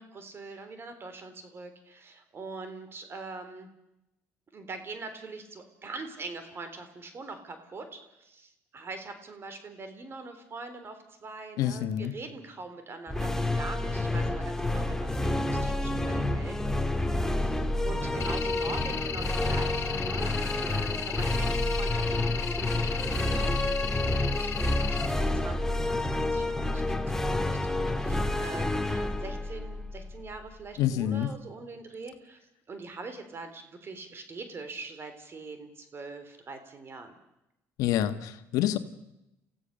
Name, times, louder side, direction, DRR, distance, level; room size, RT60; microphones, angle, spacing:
voice 1, 0.0-3.7 4.5-16.7 17.4-17.5 17.8-23.6 24.2-32.4 32.7-37.2, right 3 dB, 40° right, 8 dB, 3.6 m, -43 dB
voice 2, 11.6-12.1 30.8-31.3 37.8-38.8, left 11 dB, 80° left, 10 dB, 1.4 m, -27 dB
sound 1, 13.1-30.5, left 2 dB, 10° left, 1.8 m, -29 dB
sound 2, 18.2-25.1, left 9 dB, 60° left, 2.8 m, -36 dB
28.5 x 15.5 x 6.7 m, 0.89 s
supercardioid pair, 80°, 6 cm